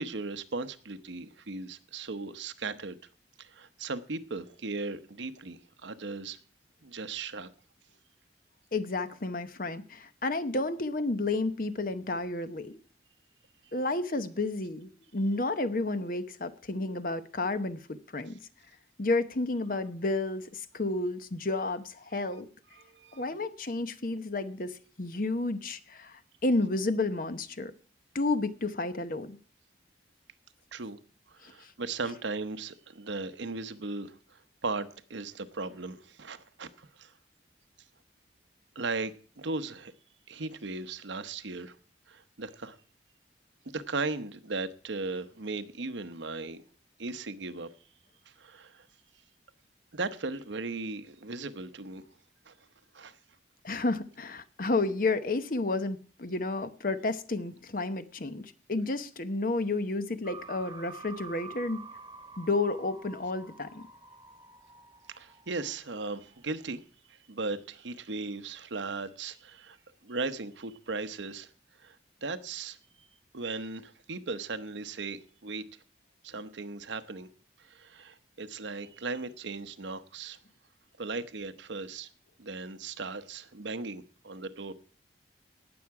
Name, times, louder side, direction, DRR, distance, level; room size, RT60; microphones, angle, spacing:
voice 1, 0.0-3.0 3.4-6.4 6.8-7.5 22.8-23.2 30.7-31.0 31.3-37.1 38.7-39.9 40.3-41.7 42.1-42.8 43.6-46.6 47.0-47.7 48.3-48.9 49.9-52.0 52.5-52.6 52.9-53.2 65.1-66.8 67.1-69.8 70.0-71.5 71.8-72.0 72.2-73.1 73.3-75.6 76.2-77.3 77.6-80.4 81.0-82.1 82.4-84.7, right 3 dB, 85° right, 11 dB, 0.9 m, -37 dB
voice 2, 8.7-12.8 13.7-18.4 19.0-22.5 23.1-27.7 28.1-29.4 31.4-31.7 53.6-61.8 62.4-63.9, left 2 dB, 50° left, 11 dB, 0.9 m, -31 dB
sound 1, 60.2-66.8, right 4 dB, 20° right, 1.3 m, -49 dB
18.5 x 7.2 x 4.8 m, 0.41 s
head